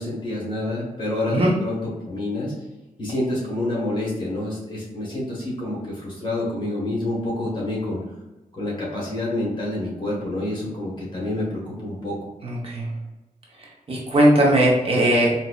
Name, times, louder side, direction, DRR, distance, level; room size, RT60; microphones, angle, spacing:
voice 1, 0.0-2.5 3.0-8.0 8.5-12.2, left 1 dB, 35° left, -4 dB, 1.3 m, -28 dB
voice 2, 12.4-12.9 13.9-15.3, right 1 dB, 40° right, -4 dB, 0.8 m, -18 dB
4.0 x 2.7 x 2.3 m, 1.0 s
wide cardioid pair, 160°, 15 cm